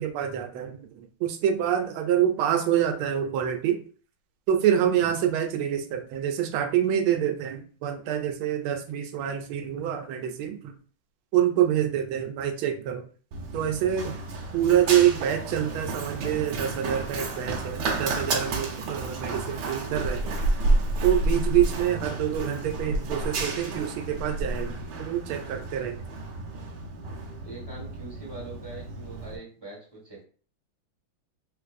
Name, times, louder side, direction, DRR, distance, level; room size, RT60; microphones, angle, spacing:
voice 1, 0.0-3.8 4.5-10.7 11.3-13.1 13.5-14.2 14.5-20.3 21.0-26.0, right 10 dB, 90° right, 6 dB, 1.5 m, -26 dB
Run, 13.3-29.4, right 2 dB, 70° right, 1.2 m, -31 dB
voice 2, 27.4-30.3, right 3 dB, 15° right, -5 dB, 1.2 m, -43 dB
3.7 x 3.1 x 2.5 m, 0.42 s
omnidirectional pair, 2.2 m